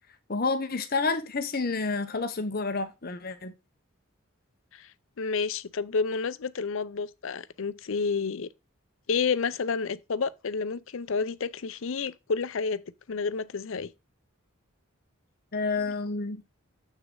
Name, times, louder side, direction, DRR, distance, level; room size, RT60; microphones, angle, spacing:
voice 1, 0.3-3.5 15.5-16.4, left 3 dB, 45° left, 0.9 m, -29 dB
voice 2, 5.2-8.5 9.1-12.8 13.1-13.9, left 5 dB, 65° left, 0.6 m, -30 dB
7.4 x 6.3 x 3.8 m
head